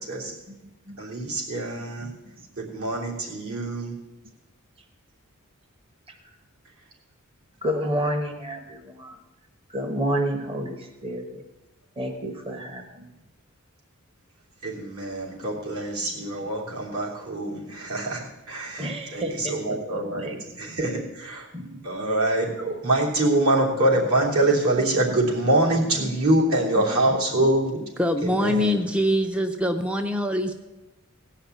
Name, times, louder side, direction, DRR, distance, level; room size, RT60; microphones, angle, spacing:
voice 1, 0.0-1.4 1.7-2.9 4.2-4.3 4.8-4.9 6.1-6.5 7.6-9.2 9.7-11.4 11.9-13.3 15.4-17.1 17.5-17.9 18.2-21.1 21.5-21.8 23.4-27.5, right 1 dB, 25° right, 5 dB, 1.0 m, -34 dB
voice 2, 1.0-2.1 2.6-4.0 14.6-18.8 19.1-19.2 19.5-20.3 20.8-21.5 21.8-27.8 28.2-28.8, right 1 dB, 70° right, -3 dB, 3.3 m, -24 dB
voice 3, 28.0-30.5, equal, 5° right, 5 dB, 0.6 m, -24 dB
17.0 x 5.7 x 9.3 m, 1.1 s
head